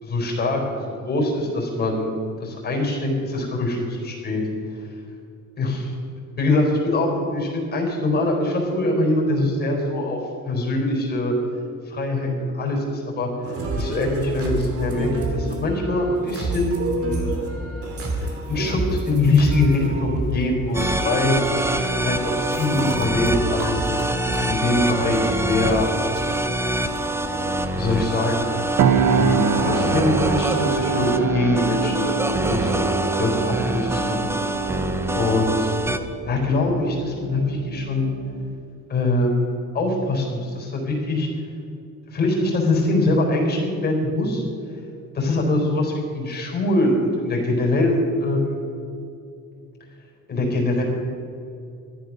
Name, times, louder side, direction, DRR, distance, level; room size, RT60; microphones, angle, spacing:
voice 1, 0.0-2.1 2.4-4.4 4.7-4.8 5.6-5.9 6.4-10.2 10.5-11.3 11.9-13.3 13.7-17.3 18.1-21.4 22.0-23.9 24.4-25.9 27.3-27.4 27.7-28.5 29.1-32.7 33.2-34.3 35.1-35.7 36.3-38.1 38.9-39.4 39.7-41.3 42.1-44.4 45.1-48.7 50.3-50.8, left 2 dB, 30° left, -1 dB, 4.0 m, -23 dB
sound 1, 13.4-32.9, right 2 dB, 50° right, 2.4 m, -31 dB
sound 2, 20.7-36.0, right 1 dB, 10° right, 0.6 m, -25 dB
sound 3, 28.8-38.5, right 6 dB, 70° right, 1.0 m, -26 dB
14.0 x 12.0 x 6.1 m, 2.5 s
cardioid pair, 165°, 30 cm